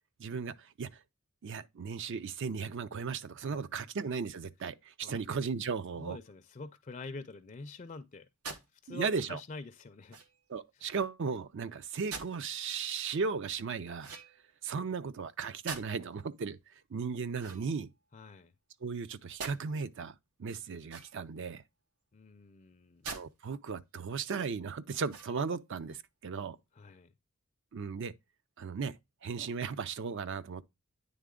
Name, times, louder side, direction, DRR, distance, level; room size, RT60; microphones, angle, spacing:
voice 1, 0.2-0.9 1.4-6.2 8.9-9.4 10.5-14.1 14.6-16.6 16.9-17.9 18.8-20.1 20.4-21.6 23.0-26.6 27.7-28.1 28.6-29.0 29.2-30.6, right 5 dB, 55° right, 0.5 m, -36 dB
voice 2, 5.9-10.2 14.7-14.8 18.1-18.5 22.1-23.1 26.7-27.1, left 3 dB, 35° left, 0.4 m, -47 dB
sound 1, 8.4-8.7 10.1-10.5 12.1-12.4 14.0-14.6 15.7-16.1 17.3-18.2 19.4-19.6 20.8-21.4 23.0-23.3 23.8-23.9 25.0-25.6, right 5 dB, 90° right, 1.1 m, -44 dB
9.4 x 3.4 x 3.6 m
head